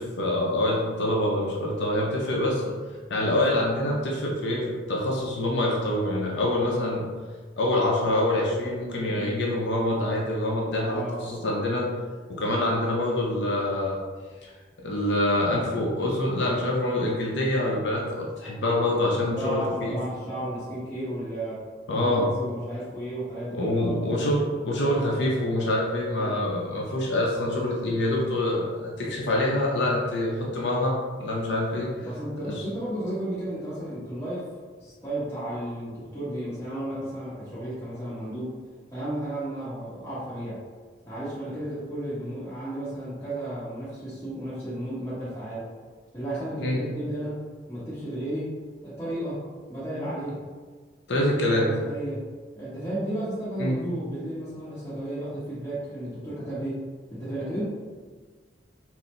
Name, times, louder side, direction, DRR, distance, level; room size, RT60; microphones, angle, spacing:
voice 1, 0.0-2.7 3.1-7.0 7.6-11.9 12.3-14.0 14.4-14.5 14.8-20.0 21.9-22.3 23.5-31.9 32.4-32.6 46.6-46.9 51.1-51.7 53.6-53.8, left 1 dB, 70° left, -3 dB, 0.6 m, -25 dB
voice 2, 9.0-9.4 10.8-11.3 19.2-21.6 21.9-24.0 26.2-26.4 31.8-34.5 34.8-38.6 38.9-40.6 41.1-45.7 46.1-47.4 47.7-48.5 48.8-49.4 49.7-50.4 51.6-52.2 52.5-56.8 57.1-57.6, right 1 dB, 15° left, -13 dB, 1.2 m, -33 dB
4.2 x 2.0 x 3.8 m, 1.5 s
head